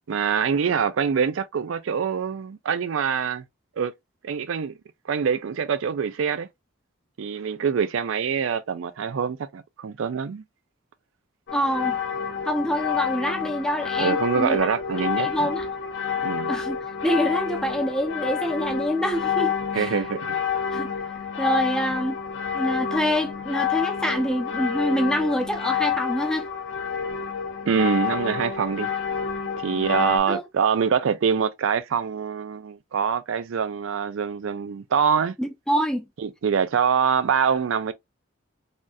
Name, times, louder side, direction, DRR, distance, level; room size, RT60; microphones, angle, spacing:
voice 1, 0.1-3.4 3.8-3.9 4.2-4.8 5.1-6.5 7.2-10.4 14.0-15.3 16.2-16.5 19.7-20.3 27.7-28.9 29.6-35.4 36.2-37.9, right 6 dB, 75° right, 0.4 m, -24 dB
sound 1, 11.5-30.2, left 7 dB, 70° left, 0.8 m, -28 dB
voice 2, 11.5-12.0 12.5-14.6 15.2-15.7 16.5-19.9 20.7-20.9 21.4-22.2 22.5-26.5 30.3-30.4 35.4-36.1, equal, 5° left, 0.4 m, -26 dB
3.4 x 2.6 x 2.3 m
head